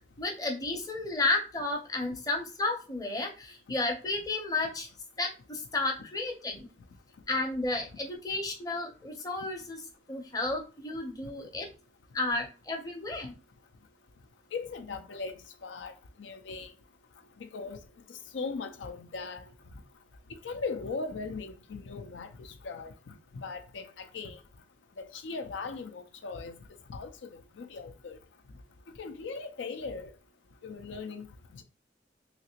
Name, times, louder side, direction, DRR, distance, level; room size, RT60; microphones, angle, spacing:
voice 1, 0.2-4.9 5.2-6.7 7.3-9.8 10.1-11.7 12.1-13.3, left 2 dB, 20° left, 0.6 m, -32 dB
voice 2, 14.5-15.9 16.2-16.7 17.4-17.8 18.1-19.4 20.4-22.9 23.3-24.4 25.0-26.6 26.9-28.2 29.0-30.1 30.6-31.2 31.5-31.6, left 4 dB, 90° left, 0.5 m, -39 dB
3.2 x 2.9 x 2.8 m
head